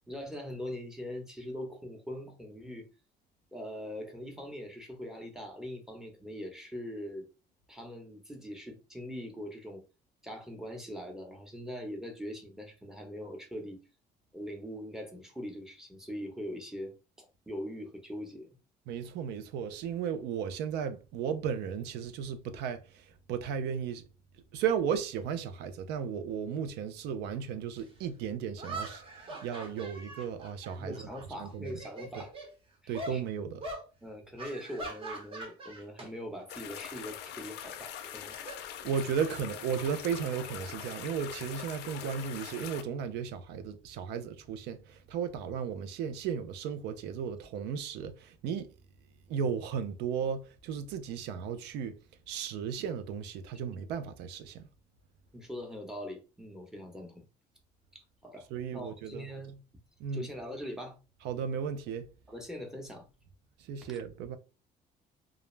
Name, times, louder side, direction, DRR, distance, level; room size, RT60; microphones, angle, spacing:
voice 1, 0.1-2.9 3.5-7.3 7.7-9.8 10.2-13.8 14.3-16.9 17.2-18.5 30.8-32.3 32.8-33.2 34.0-38.4 52.6-52.7 55.3-57.3 57.9-59.6 60.1-61.0 62.3-63.1, equal, 5° right, 0.8 m, -42 dB
voice 2, 18.9-24.0 24.5-31.8 32.1-32.2 32.9-33.6 38.8-48.7 49.3-52.0 52.3-54.7 58.5-59.3 60.0-60.3 61.2-62.1 63.6-64.4, right 7 dB, 85° right, 0.5 m, -35 dB
sound 1, 27.8-27.9 28.6-31.2 31.6-32.5 32.9-33.2 33.6-33.9 34.4-36.1 36.4-36.7 37.9-39.3, right 2 dB, 35° right, 0.9 m, -42 dB
sound 2, 36.5-42.8, left 10 dB, 80° left, 0.4 m, -43 dB
2.4 x 2.0 x 3.1 m
cardioid pair, 110°, 17 cm